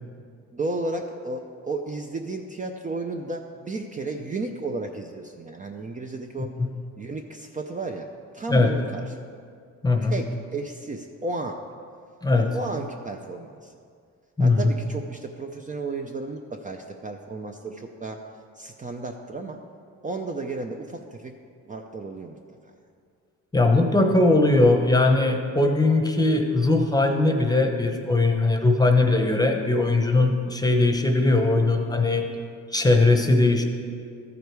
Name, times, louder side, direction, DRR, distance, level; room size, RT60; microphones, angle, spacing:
voice 1, 0.5-6.5 7.0-8.1 8.3-9.2 10.0-11.6 12.3-13.7 14.4-18.2 18.6-19.6 20.0-21.3 21.7-22.4 32.2-32.4, right 3 dB, 25° right, 3 dB, 0.5 m, -33 dB
voice 2, 9.8-10.2 12.2-12.5 14.4-14.7 23.5-32.3 32.7-33.6, left 2 dB, 15° left, 4 dB, 0.9 m, -20 dB
13.5 x 5.0 x 4.6 m, 2.2 s
cardioid pair, 90°, 30 cm